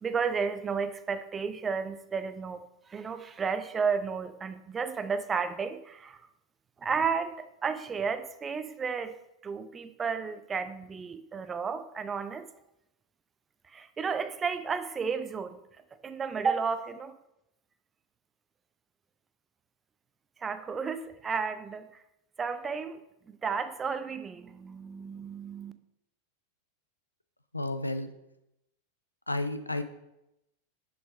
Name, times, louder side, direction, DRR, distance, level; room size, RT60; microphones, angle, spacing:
voice 1, 0.0-6.2 6.8-9.1 9.4-12.5 13.7-15.6 16.0-17.1 20.4-22.0 22.4-25.7, right 5 dB, 20° right, 11 dB, 0.6 m, -32 dB
voice 2, 27.5-28.1 29.3-29.8, left 2 dB, 85° left, 10 dB, 0.6 m, -31 dB
6.3 x 6.0 x 5.1 m, 0.85 s
figure-of-eight pair, 90°, 0 cm